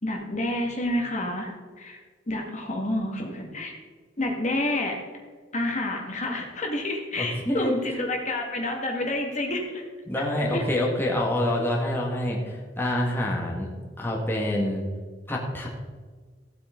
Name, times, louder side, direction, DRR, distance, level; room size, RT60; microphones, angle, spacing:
voice 1, 0.0-2.0 2.3-3.7 4.2-5.0 5.5-9.8 10.5-10.6, left 1 dB, 40° left, 1 dB, 1.8 m, -29 dB
voice 2, 7.2-7.7 10.1-13.7 14.0-14.9 15.3-15.7, left 1 dB, 10° left, -2 dB, 1.8 m, -26 dB
15.0 x 8.5 x 3.8 m, 1.5 s
head